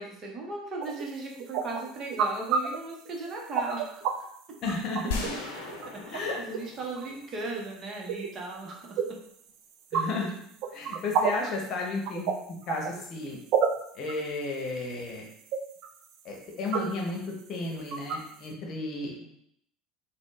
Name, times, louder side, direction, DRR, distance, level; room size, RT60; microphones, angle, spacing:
voice 1, 0.0-4.3 5.5-9.0, right 3 dB, 35° right, -1 dB, 0.8 m, -37 dB
sound 1, 0.8-4.1 4.5-5.8 6.1-6.2 6.5-7.1 7.5-7.6 7.9-8.3 8.8-9.0 9.5-11.5 12.0-12.3 12.6-13.2 13.5-18.5, right 8 dB, 55° right, 0.3 m, -30 dB
voice 2, 4.6-5.3 6.1-6.4 9.9-10.3 10.7-12.3 12.7-13.4 13.9-15.2 16.2-17.2 17.5-19.3, left 3 dB, 45° left, 0 dB, 0.9 m, -33 dB
sound 2, 5.1-8.0, left 4 dB, 65° left, 0.6 m, -38 dB
4.1 x 2.1 x 3.1 m, 0.70 s
figure-of-eight pair, 65°, 0 cm